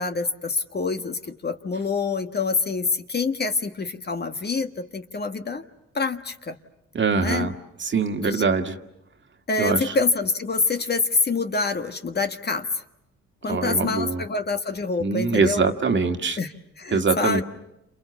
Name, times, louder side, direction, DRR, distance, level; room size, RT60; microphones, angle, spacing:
voice 1, 0.0-5.6 5.9-6.6 7.2-7.5 8.2-8.5 9.5-12.8 13.4-15.7 16.4-17.4, left 4 dB, 35° left, 7 dB, 1.6 m, -26 dB
voice 2, 6.9-7.5 7.8-8.7 9.6-10.0 13.5-14.2 15.0-16.4 16.9-17.4, right 4 dB, 40° right, 6 dB, 1.9 m, -23 dB
29.5 x 28.0 x 7.1 m, 0.86 s
cardioid pair, 90°, 30 cm